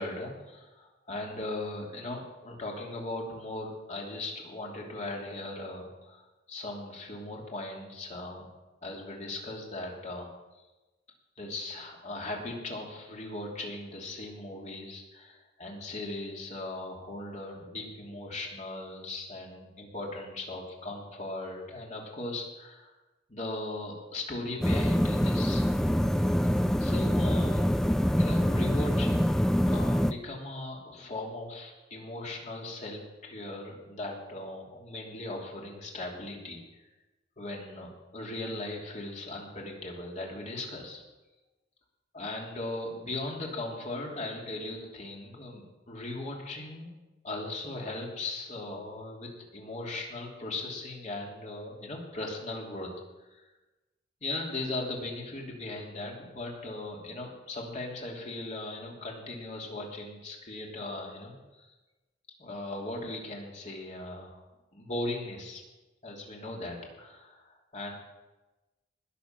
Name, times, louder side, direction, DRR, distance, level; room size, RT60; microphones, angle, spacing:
voice 1, 0.0-8.5 8.8-10.3 11.4-22.9 23.3-25.7 26.8-27.7 28.2-29.3 29.7-36.9 37.4-41.0 42.1-46.9 47.2-52.9 53.3-53.4 54.2-61.3 61.7-61.8 62.4-64.4 64.7-65.6 66.0-67.9, left 2 dB, 40° left, -1 dB, 3.0 m, -38 dB
sound 1, 24.6-30.1, equal, 5° left, 0.3 m, -25 dB
20.0 x 7.2 x 6.0 m, 1.1 s
head